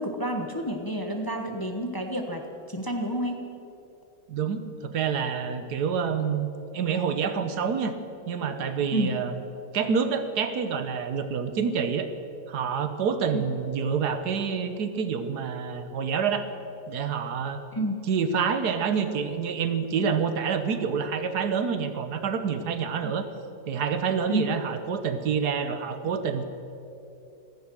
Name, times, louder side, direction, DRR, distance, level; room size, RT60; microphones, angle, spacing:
voice 1, 0.0-2.4 2.7-3.4 8.9-9.1 13.3-13.4 17.7-18.0 23.0-23.1 24.3-24.5, right 1 dB, 15° left, 3 dB, 1.1 m, -29 dB
voice 2, 4.3-6.5 6.7-7.9 8.3-9.4 9.7-12.1 12.5-16.5 16.9-17.6 18.1-23.3 23.7-26.4, right 6 dB, 80° right, 9 dB, 1.5 m, -27 dB
15.5 x 14.5 x 6.3 m, 2.8 s
omnidirectional pair, 1.7 m